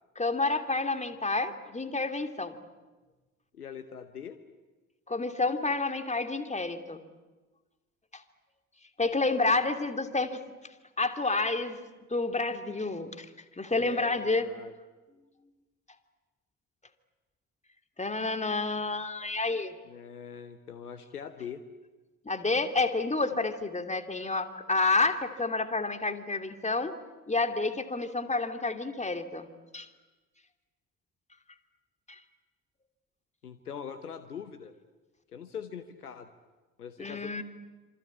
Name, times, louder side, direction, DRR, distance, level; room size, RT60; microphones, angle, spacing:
voice 1, 0.2-2.5 5.1-7.0 8.1-8.2 9.0-10.4 11.0-11.8 12.1-13.3 13.6-14.5 18.0-19.7 22.2-26.9 27.3-29.5 29.7-29.9 32.1-32.2 37.0-37.4, left 3 dB, 15° left, 8 dB, 2.8 m, -29 dB
voice 2, 3.5-4.4 13.7-14.7 19.8-21.6 33.4-34.7 35.3-36.3 36.8-37.4, left 7 dB, 90° left, 11 dB, 1.0 m, -42 dB
26.5 x 26.0 x 8.6 m, 1.2 s
figure-of-eight pair, 50°, 44 cm